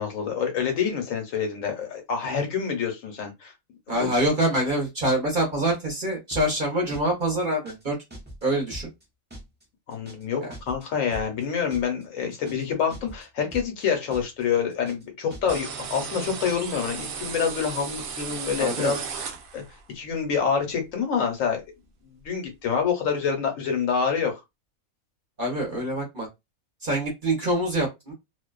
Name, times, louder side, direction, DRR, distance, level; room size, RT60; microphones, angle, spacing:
voice 1, 0.0-3.5 3.9-4.1 9.9-19.6 19.9-21.6 22.0-24.4, left 6 dB, 70° left, 1.1 m, -27 dB
voice 2, 3.9-8.0 8.4-8.9 10.4-10.5 18.6-18.9 25.4-26.3 26.8-28.1, right 1 dB, 45° right, 0.7 m, -25 dB
sound 1, 6.3-6.6 6.9-7.2 7.5-7.9 8.1-8.5 8.7-9.0 9.3-9.6 9.9-10.3 10.5-10.9 11.1-11.4 11.7-12.0 12.3-12.7 12.9-13.3 13.5-13.8 14.1-14.4 14.7-15.1 15.3-15.7, right 1 dB, 15° right, 0.3 m, -41 dB
sound 2, 15.5-19.8, right 6 dB, 75° right, 0.5 m, -35 dB
2.5 x 2.2 x 2.3 m
omnidirectional pair, 1.5 m